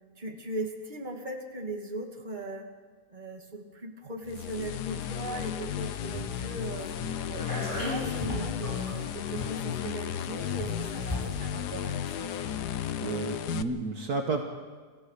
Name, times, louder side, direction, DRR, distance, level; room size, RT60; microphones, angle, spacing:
voice 1, 0.2-2.7 3.1-6.9 7.3-12.3, right 2 dB, 25° right, 2 dB, 2.3 m, -38 dB
sound 1, 4.3-13.6, left 10 dB, 70° left, 1.3 m, -34 dB
sound 2, 6.0-12.8 13.0-13.1, equal, 10° left, 7.0 m, -39 dB
voice 2, 13.0-14.4, right 3 dB, 60° right, 3 dB, 1.8 m, -31 dB
27.5 x 15.5 x 6.6 m, 1.5 s
omnidirectional pair, 1.9 m